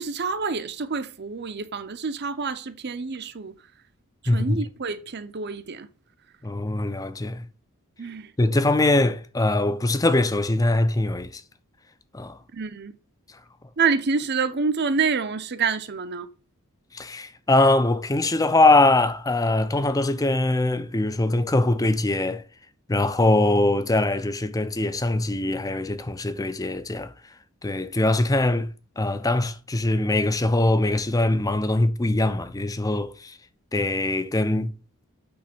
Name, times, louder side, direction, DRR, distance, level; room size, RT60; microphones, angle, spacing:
voice 1, 0.0-3.5 4.2-5.9 8.0-8.3 12.5-13.0 13.8-16.3, right 5 dB, 50° right, 0.7 m, -27 dB
voice 2, 4.3-4.6 6.4-7.5 8.4-11.4 12.1-12.4 16.9-22.4 22.9-27.1 27.6-28.7 29.0-33.4 33.7-34.7, left 2 dB, 15° left, 0.5 m, -22 dB
8.7 x 3.3 x 6.0 m
head